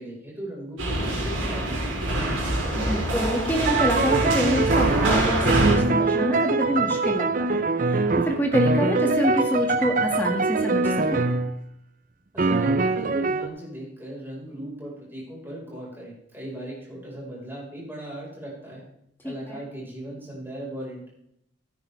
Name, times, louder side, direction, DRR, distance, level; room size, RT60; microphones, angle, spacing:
voice 1, 0.0-2.1 12.3-18.8 19.2-21.1, right 1 dB, 10° right, -5 dB, 4.7 m, -38 dB
sound 1, 0.8-5.8, right 1 dB, 85° right, 4.5 m, -25 dB
voice 2, 2.7-11.2 19.2-19.6, equal, 10° left, 1 dB, 1.9 m, -27 dB
sound 2, 3.6-11.6 12.4-13.5, right 3 dB, 40° right, 0.5 m, -23 dB
15.0 x 9.7 x 3.4 m, 0.77 s
head